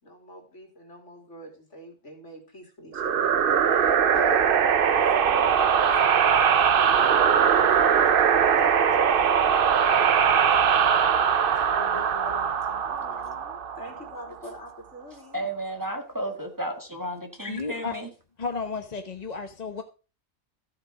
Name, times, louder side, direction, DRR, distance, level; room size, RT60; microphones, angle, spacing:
voice 1, 0.0-4.6 5.1-6.4 6.7-9.3 11.4-15.4 17.4-17.5, left 1 dB, 65° left, 3.7 m, -43 dB
sound 1, 2.9-14.3, right 7 dB, 50° right, 0.8 m, -21 dB
voice 2, 15.3-18.1, right 1 dB, 15° right, 1.8 m, -33 dB
voice 3, 17.5-17.9 18.4-19.8, left 4 dB, 35° left, 1.0 m, -32 dB
14.0 x 8.0 x 5.0 m
omnidirectional pair, 1.3 m